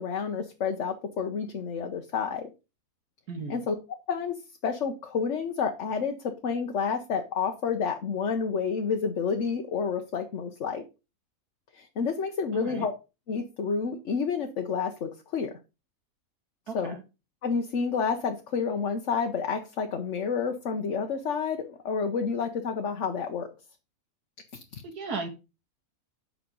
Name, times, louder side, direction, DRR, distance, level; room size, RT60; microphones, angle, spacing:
voice 1, 0.0-2.5 3.5-3.7 4.1-10.8 11.7-12.9 13.3-15.6 16.7-17.0 17.4-23.5 24.7-24.8, left 5 dB, 55° left, 4 dB, 1.2 m, -29 dB
voice 2, 12.5-12.9 16.7-17.0 24.8-25.3, right 4 dB, 80° right, 4 dB, 2.1 m, -35 dB
9.2 x 5.9 x 5.2 m, 0.29 s
omnidirectional pair, 1.6 m